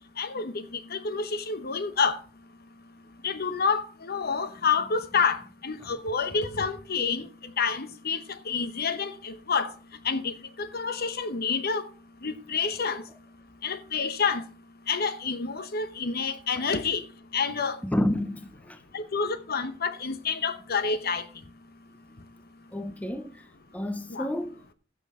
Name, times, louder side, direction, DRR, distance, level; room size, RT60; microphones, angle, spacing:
voice 1, 0.2-2.2 3.2-7.3 7.6-9.7 10.0-10.3 10.6-11.8 12.2-13.0 13.6-14.4 14.9-17.0 17.3-17.8 18.9-21.2 24.1-24.3, left 5 dB, 50° left, 0.9 m, -28 dB
voice 2, 17.8-18.8 22.7-23.5 23.7-24.6, left 1 dB, 5° left, 0.6 m, -30 dB
15.5 x 6.5 x 3.6 m
head